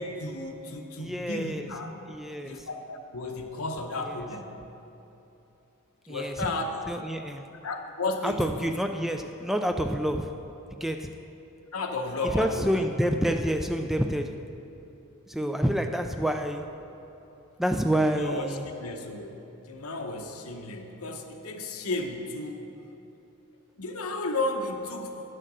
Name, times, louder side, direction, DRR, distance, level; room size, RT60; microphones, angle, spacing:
voice 1, 0.0-1.9 2.4-4.5 6.1-6.8 7.6-8.5 11.7-12.7 17.9-22.7 23.8-25.1, left 2 dB, 90° left, 4 dB, 1.0 m, -33 dB
voice 2, 1.0-1.7 2.1-2.7 4.0-4.2 6.1-6.5 6.9-7.5 8.2-11.2 12.2-14.5 15.3-16.8 17.6-18.7, equal, ahead, 6 dB, 0.3 m, -28 dB
11.0 x 6.6 x 6.1 m, 3.0 s
head